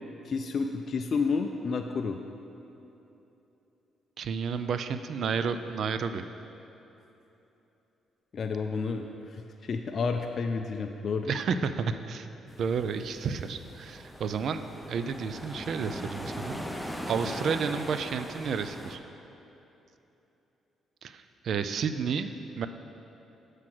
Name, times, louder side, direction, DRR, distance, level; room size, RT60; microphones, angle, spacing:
voice 1, 0.2-2.2 8.3-11.3, left 4 dB, 50° left, 4 dB, 0.4 m, -30 dB
voice 2, 4.2-6.2 11.3-12.3 12.6-16.7 17.0-19.0 21.0-22.3 22.6-22.7, right 6 dB, 60° right, 10 dB, 0.4 m, -31 dB
sound 1, 12.5-19.0, equal, ahead, 0.6 m, -40 dB
7.6 x 4.9 x 6.0 m, 3.0 s
cardioid pair, 90°, 0 cm